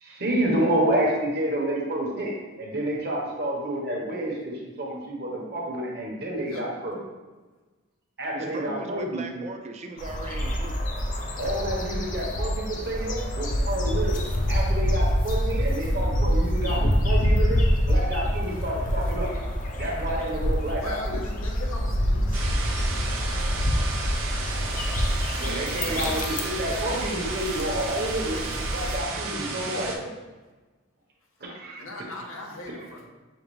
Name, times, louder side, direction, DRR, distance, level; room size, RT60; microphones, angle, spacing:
voice 1, 0.0-7.0 8.2-9.3 11.4-14.2 14.5-17.6 17.9-19.3 19.7-21.2 25.4-28.4 28.7-30.1 31.4-31.9, right 1 dB, 50° right, -2 dB, 1.0 m, -29 dB
voice 2, 8.3-10.8 25.5-26.2, right 2 dB, 35° right, 5 dB, 0.4 m, -38 dB
sound 1, 10.0-29.0, equal, 40° left, 0.5 m, -26 dB
voice 3, 20.8-23.4 31.8-33.1, left 2 dB, 85° left, 0 dB, 0.8 m, -40 dB
sound 2, 22.3-30.0, right 3 dB, 80° right, 0.7 m, -33 dB
6.3 x 2.3 x 3.1 m, 1.2 s
head